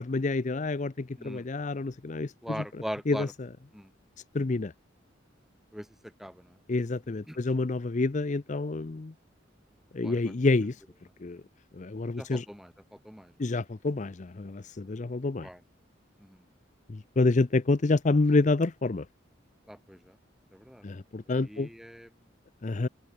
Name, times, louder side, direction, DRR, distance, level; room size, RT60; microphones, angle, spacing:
voice 1, 0.0-2.3 3.1-3.3 4.3-4.7 6.7-9.1 9.9-10.8 11.2-11.4 11.8-12.4 13.4-15.5 16.9-19.0 20.8-21.7 22.6-22.9, left 3 dB, 40° left, 0.6 m, -28 dB
voice 2, 1.2-1.5 2.4-3.3 3.7-3.9 5.7-6.6 7.3-7.5 10.0-10.3 12.2-13.3 15.4-15.6 16.2-16.4 19.7-20.2 20.5-20.8 21.3-22.1, equal, ahead, 3.3 m, -41 dB
open air
head